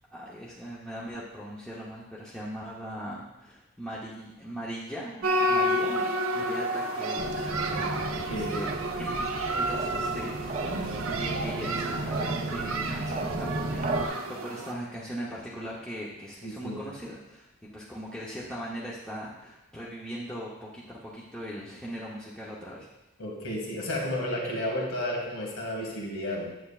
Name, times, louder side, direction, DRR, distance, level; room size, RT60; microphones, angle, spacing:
voice 1, 0.1-8.7 9.0-22.9, equal, 5° left, -7 dB, 0.8 m, -40 dB
sound 1, 5.2-14.7, right 1 dB, 85° right, 0.7 m, -30 dB
sound 2, 7.2-14.1, right 2 dB, 35° right, 0.5 m, -34 dB
voice 2, 8.1-8.5 16.4-16.8 23.2-26.5, left 1 dB, 85° left, -1 dB, 2.1 m, -32 dB
9.3 x 7.7 x 2.4 m, 0.98 s
head